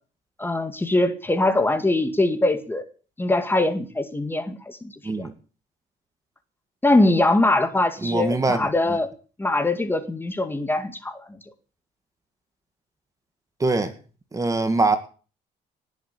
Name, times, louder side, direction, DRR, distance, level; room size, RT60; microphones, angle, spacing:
voice 1, 0.4-2.8 3.2-5.3 6.8-9.1 9.4-11.4, left 2 dB, 10° left, 2.2 m, -22 dB
voice 2, 8.0-8.7 13.6-13.9 14.3-15.0, right 3 dB, 20° right, 2.1 m, -22 dB
19.5 x 7.6 x 8.6 m
cardioid pair, 110°, 17 cm